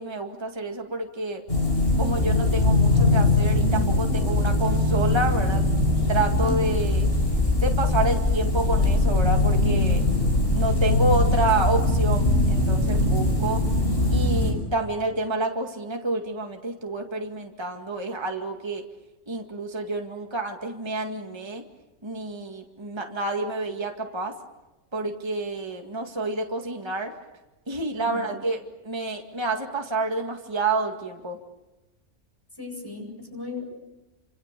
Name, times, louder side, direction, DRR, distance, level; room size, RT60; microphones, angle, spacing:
voice 1, 0.0-1.4 2.0-5.6 6.1-7.1 7.6-10.0 10.5-13.6 14.1-18.8 19.3-21.6 22.0-24.3 24.9-27.1 27.7-31.4, right 2 dB, 20° right, 3 dB, 2.1 m, -28 dB
sound 1, 1.5-14.5, left 2 dB, 40° left, 8.0 m, -21 dB
voice 2, 6.4-6.8 27.9-28.4 32.5-33.6, left 3 dB, 15° left, 3 dB, 8.0 m, -36 dB
29.0 x 27.5 x 6.9 m, 1.1 s
omnidirectional pair, 1.5 m